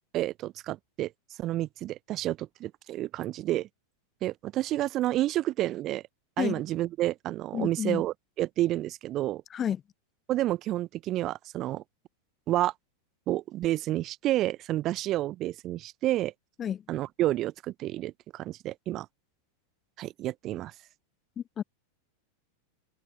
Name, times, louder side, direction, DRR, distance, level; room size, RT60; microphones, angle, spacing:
voice 1, 0.1-1.1 1.4-3.7 4.2-6.0 6.4-9.4 10.3-11.8 12.5-12.7 13.3-16.3 16.9-19.1 20.0-20.7, right 15 dB, 35° right, 0.5 m, -30 dB
voice 2, 7.5-8.0 9.5-9.8 16.6-16.8 21.4-21.6, left 9 dB, 25° left, 0.7 m, -30 dB
open air
figure-of-eight pair, 90°, 0 cm